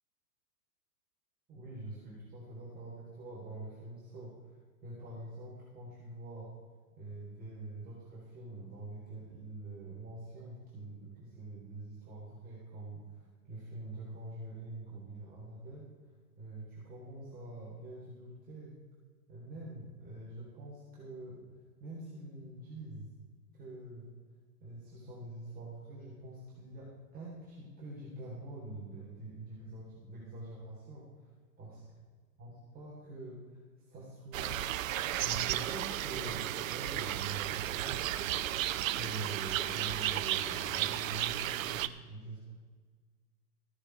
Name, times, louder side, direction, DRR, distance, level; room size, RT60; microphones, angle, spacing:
voice 1, 1.5-4.6 4.8-6.5 7.0-15.9 16.4-18.8 19.3-23.1 23.5-24.1 24.6-31.3 31.6-31.7 32.4-33.6 33.9-34.6 34.9-38.6 38.9-42.5, right 2 dB, 20° right, -7 dB, 3.7 m, -45 dB
sound 1, 34.3-41.9, right 13 dB, 55° right, 0.7 m, -34 dB
15.0 x 10.0 x 4.7 m, 1.5 s
hypercardioid pair, 135°, 49 cm